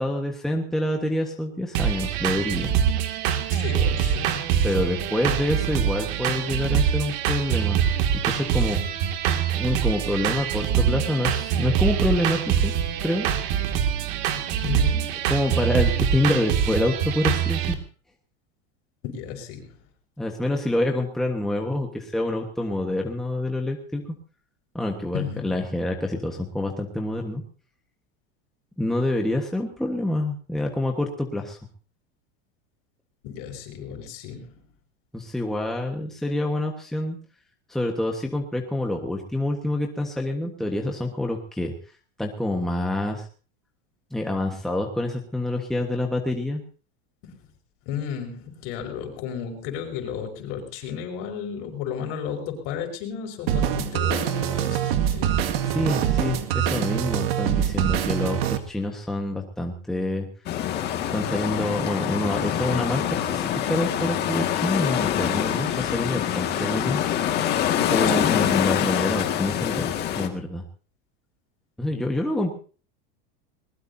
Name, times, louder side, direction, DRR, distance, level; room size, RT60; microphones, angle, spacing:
voice 1, 0.0-2.7 4.6-7.8 8.2-8.8 9.5-12.7 13.0-13.3 15.3-17.8 20.2-24.0 24.7-27.4 28.8-31.6 35.1-37.2 37.7-41.7 42.2-43.3 44.1-46.6 55.6-60.3 61.1-63.0 63.3-67.0 67.9-70.6 71.8-72.6, left 1 dB, ahead, 1 dB, 1.4 m, -27 dB
sound 1, 1.7-17.7, right 9 dB, 55° right, 2.4 m, -24 dB
voice 2, 3.5-4.5 14.6-15.3 19.0-19.8 25.1-25.6 33.2-34.6 47.2-47.4 47.9-55.4 68.1-68.5, left 8 dB, 50° left, 4 dB, 5.5 m, -33 dB
sound 2, 53.5-58.6, right 10 dB, 85° right, 2.1 m, -24 dB
sound 3, 60.5-70.3, left 10 dB, 35° left, 2.0 m, -25 dB
21.5 x 20.5 x 2.8 m, 0.39 s
supercardioid pair, 165°, 29 cm